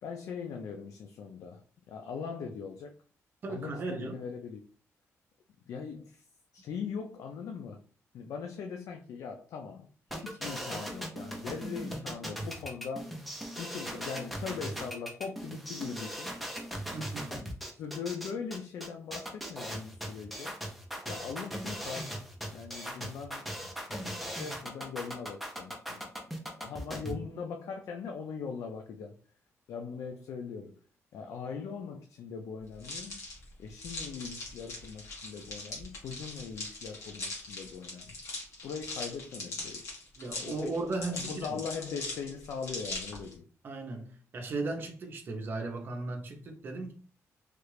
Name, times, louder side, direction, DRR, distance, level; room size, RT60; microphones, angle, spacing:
voice 1, 0.0-3.0 3.5-4.6 5.7-6.2 6.5-7.8 8.1-13.2 13.6-16.3 17.3-20.6 21.0-22.1 22.4-26.1 26.6-29.2 29.7-30.7 31.1-33.2 33.6-38.2 38.6-39.8 40.3-40.7 41.0-43.5, left 6 dB, 80° left, 0.4 m, -40 dB
voice 2, 3.4-4.2 16.9-17.5 27.0-27.2 40.2-41.6 43.6-44.1 44.3-46.9, right 3 dB, 40° right, 0.7 m, -36 dB
sound 1, 10.1-27.1, equal, ahead, 0.5 m, -39 dB
sound 2, 32.8-43.3, left 2 dB, 60° left, 1.3 m, -41 dB
3.2 x 2.4 x 3.2 m
wide cardioid pair, 175°, 5 cm